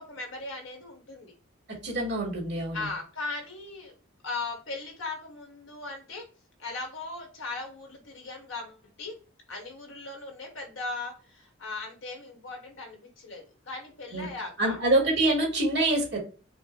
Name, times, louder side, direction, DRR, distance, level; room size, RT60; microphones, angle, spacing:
voice 1, 0.0-1.3 2.7-6.3 6.6-9.2 9.5-14.8, left 3 dB, 70° left, 2 dB, 1.4 m, -38 dB
voice 2, 1.8-2.9 14.1-14.3 14.6-16.2, right 2 dB, 55° right, -3 dB, 2.4 m, -25 dB
5.2 x 2.1 x 3.8 m, 0.37 s
head